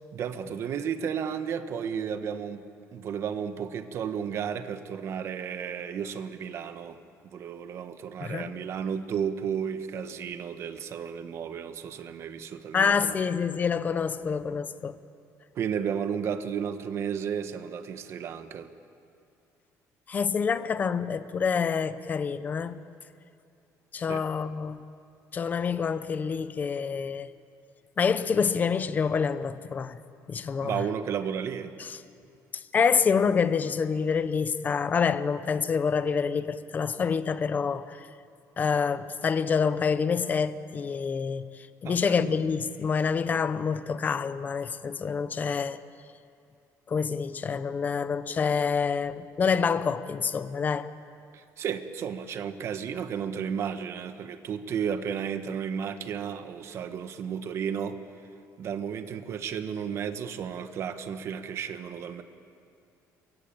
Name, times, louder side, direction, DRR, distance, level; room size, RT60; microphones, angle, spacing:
voice 1, 0.1-2.6 2.9-7.0 7.2-13.2 15.5-18.7 24.1-24.2 30.6-31.7 41.8-42.4 51.3-58.0 58.6-62.2, right 7 dB, 45° right, 1.4 m, -33 dB
voice 2, 8.2-8.5 12.7-15.0 20.1-22.8 23.9-24.8 25.3-27.3 28.0-30.0 30.3-30.8 31.8-32.0 32.5-38.1 38.6-45.8 46.9-50.9, left 6 dB, 25° left, 0.8 m, -27 dB
27.5 x 23.0 x 8.8 m
cardioid pair, 165°, 6 cm